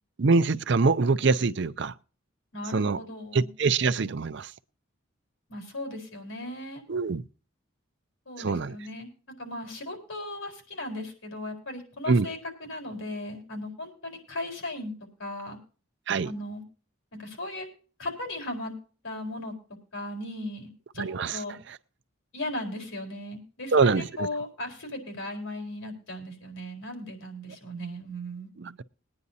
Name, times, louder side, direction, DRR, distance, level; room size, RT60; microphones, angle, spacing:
voice 1, 0.2-1.9 2.7-3.0 3.3-4.5 6.9-7.2 8.4-8.8 12.1-12.3 16.1-16.3 21.0-21.4 21.7-21.8 23.7-24.3 28.6-28.8, right 4 dB, 55° right, 0.5 m, -24 dB
voice 2, 2.5-3.5 5.5-6.8 8.3-9.1 9.4-14.9 15.2-15.6 16.2-16.6 17.1-17.7 18.0-18.7 19.0-19.5 19.9-21.0 21.3-21.5 22.3-28.5, left 1 dB, 75° left, 4.3 m, -37 dB
21.5 x 9.7 x 2.7 m
head